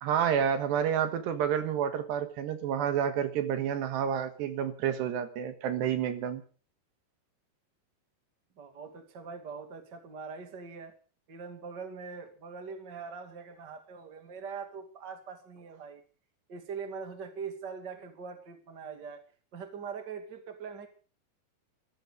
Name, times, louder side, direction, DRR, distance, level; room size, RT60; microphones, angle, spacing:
voice 1, 0.0-6.4, right 8 dB, 80° right, 9 dB, 3.6 m, -29 dB
voice 2, 8.6-10.9 11.3-16.0 16.5-19.2 19.5-20.9, right 5 dB, 30° right, 7 dB, 2.2 m, -42 dB
14.5 x 14.0 x 6.7 m, 0.40 s
omnidirectional pair, 5.0 m